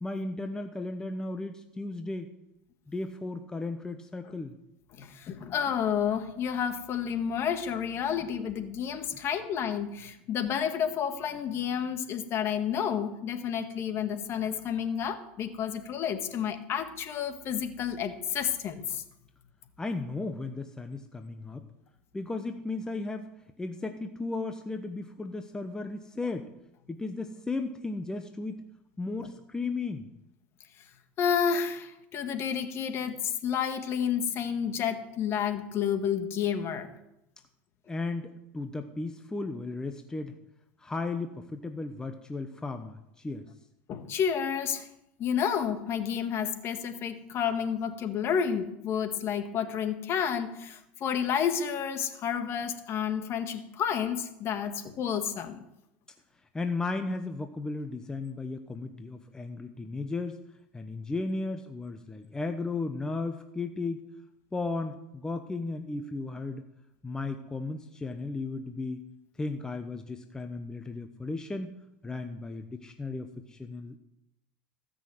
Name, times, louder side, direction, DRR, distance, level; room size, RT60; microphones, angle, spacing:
voice 1, 0.0-2.3 2.9-4.6 19.8-21.7 22.1-23.3 23.6-26.5 26.9-28.6 29.0-30.1 37.9-40.4 40.8-43.5 56.5-60.4 60.7-64.1 64.5-66.6 67.0-69.0 69.4-71.7 72.0-74.0, left 3 dB, 10° left, 6 dB, 1.0 m, -35 dB
voice 2, 5.0-19.0 31.2-36.9 43.9-44.9 45.2-55.6, left 8 dB, 45° left, 7 dB, 1.8 m, -30 dB
17.0 x 6.3 x 7.8 m, 0.85 s
supercardioid pair, 105°, 6 cm